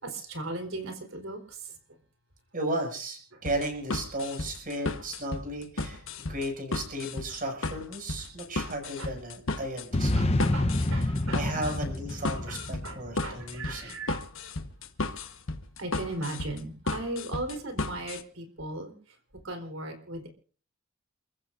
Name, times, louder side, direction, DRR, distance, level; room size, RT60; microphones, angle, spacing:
voice 1, 0.0-1.6 8.6-8.7 9.0-9.1 10.1-11.8 12.5-14.2 15.1-15.3 15.8-18.9 19.4-20.3, right 2 dB, 70° right, 5 dB, 4.0 m, -38 dB
voice 2, 2.5-6.0 6.3-10.8 11.3-14.0, right 1 dB, 40° right, 3 dB, 6.4 m, -35 dB
sound 1, 3.4-18.2, left 2 dB, 65° left, 1.3 m, -34 dB
sound 2, 9.9-13.4, left 1 dB, 30° left, 0.9 m, -28 dB
29.0 x 14.5 x 2.6 m, 0.41 s
head